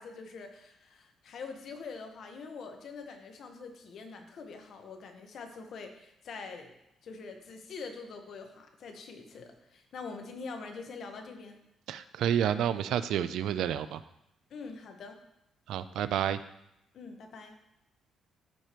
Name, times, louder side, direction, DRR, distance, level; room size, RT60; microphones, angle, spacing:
voice 1, 0.0-6.7 7.0-11.6 14.5-15.2 16.9-17.6, left 4 dB, 65° left, 5 dB, 1.2 m, -44 dB
voice 2, 11.9-14.0 15.7-16.4, right 10 dB, 80° right, 13 dB, 0.4 m, -29 dB
13.5 x 5.0 x 3.0 m, 0.82 s
cardioid pair, 90°, 0 cm